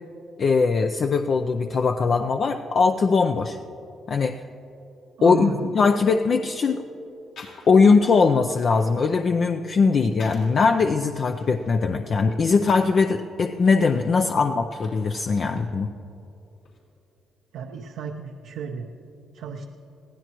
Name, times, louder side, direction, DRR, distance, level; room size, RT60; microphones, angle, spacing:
voice 1, 0.4-3.6 4.1-4.4 5.2-6.8 7.7-15.9, left 4 dB, 50° left, 5 dB, 0.5 m, -20 dB
voice 2, 5.2-5.7 17.5-18.9 19.3-19.7, right 5 dB, 85° right, 3 dB, 0.8 m, -33 dB
sound 1, 5.8-6.5 7.4-8.0 8.3-10.6 11.1-13.0 13.5-15.7 16.0-16.8, left 4 dB, 75° left, 3.8 m, -50 dB
21.5 x 15.5 x 3.1 m, 2.9 s
cardioid pair, 90°, 0 cm